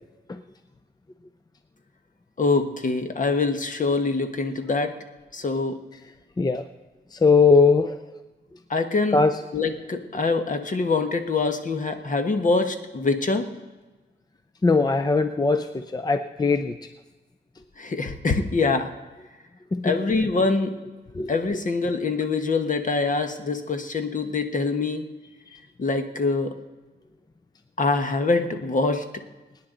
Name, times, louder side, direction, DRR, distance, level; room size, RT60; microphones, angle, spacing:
voice 1, 2.4-5.0 5.3-5.8 8.7-9.2 9.5-13.5 17.8-18.9 19.8-20.7 21.3-25.1 25.8-26.5 27.8-29.1, left 3 dB, 45° left, 7 dB, 1.3 m, -24 dB
voice 2, 7.1-7.9 9.1-9.3 14.6-16.7 19.7-19.8 21.2-21.3, left 4 dB, 20° left, 9 dB, 0.6 m, -20 dB
23.5 x 9.9 x 3.9 m, 1.2 s
cardioid pair, 95°, 18 cm